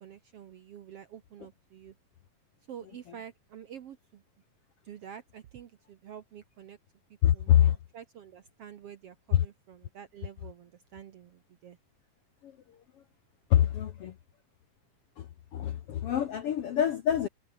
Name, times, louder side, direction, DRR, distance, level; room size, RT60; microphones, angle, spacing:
voice 1, 0.0-1.9 2.7-4.2 4.8-6.8 7.3-11.8, right 9 dB, 65° right, 1.5 m, -48 dB
voice 2, 7.2-7.8 9.3-9.4 12.4-12.5 13.5-14.1 15.2-15.3 15.5-17.3, left 11 dB, 70° left, 1.4 m, -25 dB
omnidirectional pair, 4.1 m